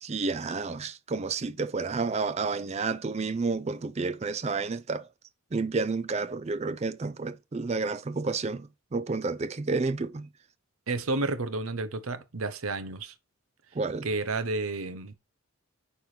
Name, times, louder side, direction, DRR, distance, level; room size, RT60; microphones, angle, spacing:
voice 1, 0.0-5.1 5.5-10.3 13.7-14.1, right 4 dB, 30° right, 0.4 m, -30 dB
voice 2, 10.9-13.1 14.0-15.1, right 3 dB, 80° right, 0.8 m, -31 dB
8.8 x 4.6 x 3.3 m
head